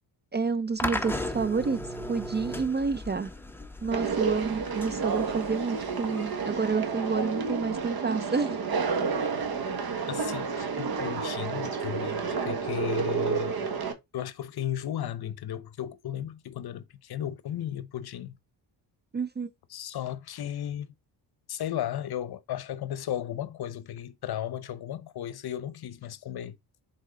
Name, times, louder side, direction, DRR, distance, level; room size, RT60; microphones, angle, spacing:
voice 1, 0.3-1.8 2.1-3.3 3.8-8.6 19.1-19.5, right 5 dB, 25° right, 0.4 m, -29 dB
sound 1, 0.8-7.9, left 1 dB, 5° left, 0.8 m, -37 dB
Conversation, 3.9-13.9, right 5 dB, 55° right, 1.4 m, -30 dB
voice 2, 10.1-13.7 14.1-18.4 19.7-20.9 21.5-26.6, left 11 dB, 60° left, 0.8 m, -35 dB
6.5 x 4.1 x 3.7 m
cardioid pair, 95°, 44 cm